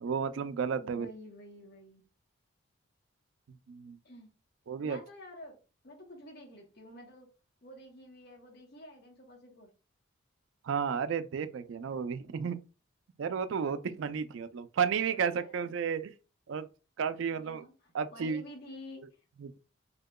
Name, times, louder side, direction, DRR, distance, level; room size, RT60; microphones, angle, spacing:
voice 1, 0.0-1.1 3.7-4.0 4.7-5.0 10.7-12.6 13.2-16.1 16.5-16.7 17.0-17.6 17.9-18.4 19.4-19.6, right 6 dB, 70° right, 0.3 m, -32 dB
voice 2, 0.7-2.0 4.0-4.3 4.8-5.6 5.8-7.3 7.6-9.7 15.0-15.8 17.3-19.1 19.4-19.5, left 1 dB, 50° left, 0.8 m, -50 dB
3.6 x 2.8 x 2.2 m
head